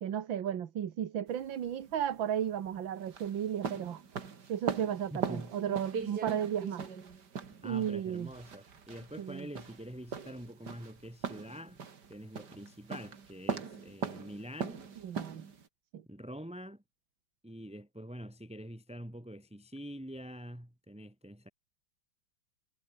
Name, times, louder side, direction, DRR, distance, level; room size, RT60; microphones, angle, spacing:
voice 1, 0.0-4.0 4.5-6.9 7.6-8.3 9.2-9.5 15.0-15.5 15.9-16.0, right 9 dB, 70° right, 2.1 m, -34 dB
sound 1, 1.3-15.7, right 6 dB, 55° right, 2.7 m, -40 dB
voice 2, 5.1-5.5 7.6-11.8 12.1-14.9 16.1-16.8 17.4-21.5, equal, 5° right, 2.8 m, -45 dB
omnidirectional pair, 2.2 m